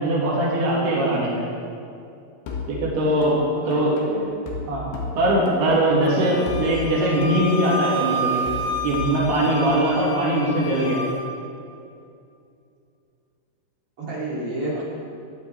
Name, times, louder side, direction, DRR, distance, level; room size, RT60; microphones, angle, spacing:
voice 1, 0.0-1.5 2.7-3.4 3.7-3.9 4.7-4.8 5.2-8.4 8.8-11.0, right 1 dB, 80° right, -5 dB, 4.2 m, -21 dB
sound 1, 2.5-6.1 6.5-10.1, left 3 dB, 90° left, 3.9 m, -34 dB
voice 2, 3.6-4.4 14.0-14.8, right 1 dB, 40° right, -6 dB, 3.5 m, -30 dB
Wind instrument woodwind instrument, 6.1-11.3, right 1 dB, 60° left, 2.4 m, -30 dB
16.0 x 11.5 x 4.5 m, 2.5 s
omnidirectional pair, 4.5 m